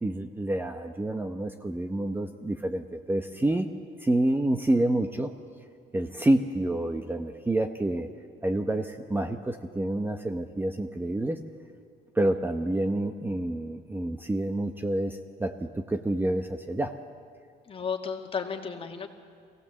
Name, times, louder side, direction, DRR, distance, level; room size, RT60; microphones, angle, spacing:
voice 1, 0.0-3.7 4.0-5.3 5.9-8.1 8.4-11.4 12.1-17.0, right 1 dB, 10° right, 6 dB, 0.9 m, -28 dB
voice 2, 17.7-19.1, left 6 dB, 35° left, 4 dB, 1.9 m, -33 dB
23.0 x 17.0 x 7.5 m, 2.3 s
cardioid pair, 110°, 17 cm